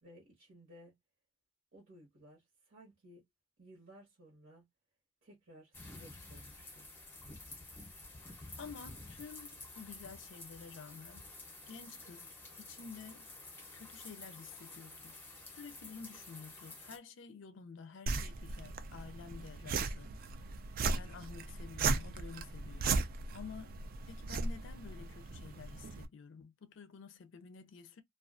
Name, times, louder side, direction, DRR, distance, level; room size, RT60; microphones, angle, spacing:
voice 1, 0.0-0.9 1.7-3.2 3.6-4.6 5.2-6.9, equal, 65° right, 1.1 m, -58 dB
sound 1, 5.7-17.0, left 2 dB, 10° left, 0.6 m, -51 dB
voice 2, 8.6-11.3 11.7-12.3 12.6-13.3 13.7-15.2 15.5-20.4 20.9-22.9 23.3-28.0, left 5 dB, 65° left, 0.4 m, -51 dB
sound 2, 18.1-26.1, right 4 dB, 45° right, 0.3 m, -37 dB
2.3 x 2.3 x 2.3 m
head